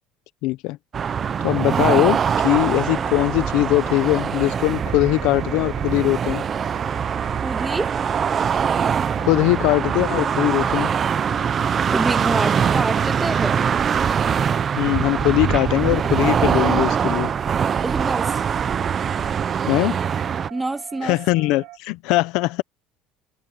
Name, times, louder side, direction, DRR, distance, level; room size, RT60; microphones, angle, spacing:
voice 1, 0.4-0.8 1.4-6.4 9.2-10.9 14.8-17.3 19.7-20.0 21.0-22.6, left 19 dB, 70° left, 0.7 m, -21 dB
sound 1, 0.9-20.5, right 7 dB, 25° right, 0.5 m, -22 dB
Wind instrument woodwind instrument, 1.9-15.3, left 5 dB, 20° left, 5.1 m, -45 dB
sound 2, 4.6-21.8, right 20 dB, 75° right, 3.6 m, -43 dB
voice 2, 7.3-8.0 11.9-13.6 17.8-18.4 20.5-21.2, right 2 dB, 10° right, 1.7 m, -26 dB
cardioid pair, 155°, 0 cm